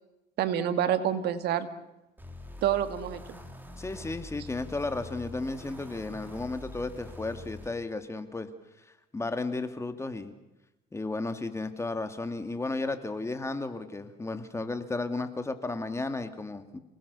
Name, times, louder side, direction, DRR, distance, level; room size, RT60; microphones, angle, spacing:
voice 1, 0.4-1.7 2.6-3.4, right 10 dB, 75° right, 10 dB, 2.1 m, -27 dB
sound 1, 2.2-7.7, left 2 dB, 10° right, 3.4 m, -45 dB
voice 2, 3.8-8.5 9.1-10.3 10.9-16.8, left 3 dB, 15° left, 8 dB, 2.4 m, -34 dB
29.0 x 20.0 x 7.0 m, 0.96 s
cardioid pair, 110°, 17 cm